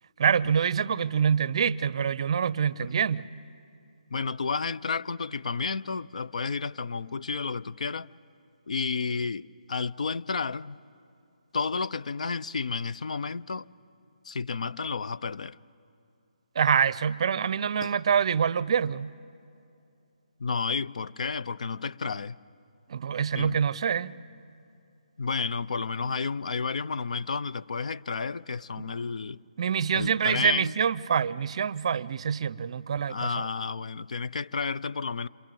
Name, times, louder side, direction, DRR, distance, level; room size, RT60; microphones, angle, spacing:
voice 1, 0.2-3.3 16.6-19.1 22.9-24.1 28.8-28.9 29.6-33.5, right 7 dB, 45° right, 0.5 m, -26 dB
voice 2, 4.1-8.1 8.7-10.8 11.5-13.7 14.2-15.6 17.8-17.9 20.4-22.4 23.3-23.6 25.2-29.4 29.9-30.7 33.1-35.3, left 5 dB, 60° left, 0.5 m, -31 dB
27.5 x 26.5 x 7.7 m
figure-of-eight pair, 150°, 4 cm